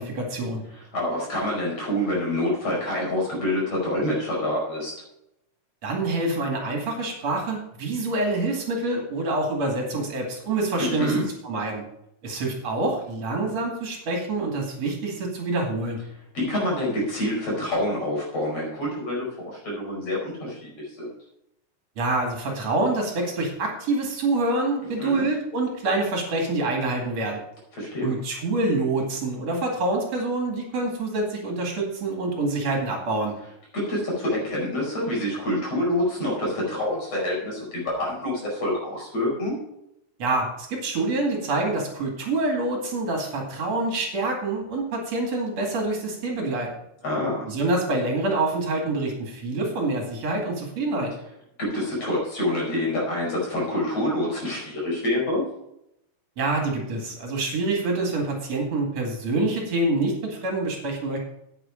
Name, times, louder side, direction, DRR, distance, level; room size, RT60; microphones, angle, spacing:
voice 1, 0.0-0.6 5.8-11.1 11.4-11.8 12.2-16.0 22.0-27.4 28.0-33.3 40.2-46.7 47.5-51.1 56.4-61.2, right 2 dB, 60° right, 1 dB, 3.3 m, -26 dB
voice 2, 0.7-4.9 10.8-11.2 16.3-21.1 25.0-25.3 27.7-28.2 33.7-39.5 47.0-47.5 51.6-55.4, left 1 dB, 55° left, -4 dB, 6.0 m, -27 dB
10.0 x 9.3 x 5.0 m, 0.81 s
omnidirectional pair, 3.4 m